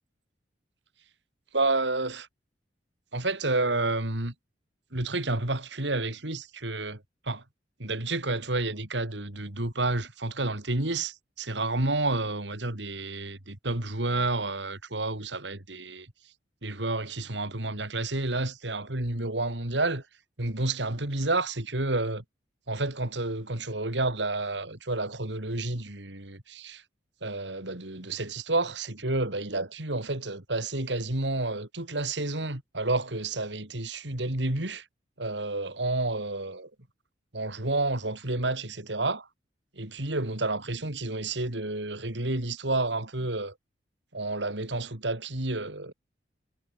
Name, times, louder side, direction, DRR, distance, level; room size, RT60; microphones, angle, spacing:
voice 1, 1.5-2.3 3.1-4.3 4.9-7.4 7.8-16.1 16.6-20.0 20.4-22.2 22.7-26.8 27.2-34.8 35.2-36.7 37.3-39.3 39.7-43.5 44.1-45.9, right 2 dB, 75° right, 3.3 m, -30 dB
head